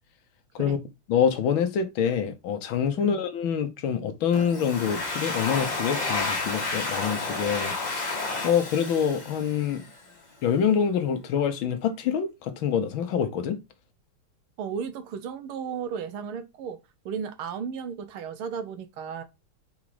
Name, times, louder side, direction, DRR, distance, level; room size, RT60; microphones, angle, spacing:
voice 1, 1.1-9.8 10.4-13.6, left 7 dB, 70° left, 1.6 m, -26 dB
Domestic sounds home sounds, 4.3-9.9, left 3 dB, 25° left, 1.0 m, -31 dB
voice 2, 14.6-16.8 17.1-19.2, right 7 dB, 80° right, 1.7 m, -34 dB
5.0 x 4.2 x 4.7 m
omnidirectional pair, 2.4 m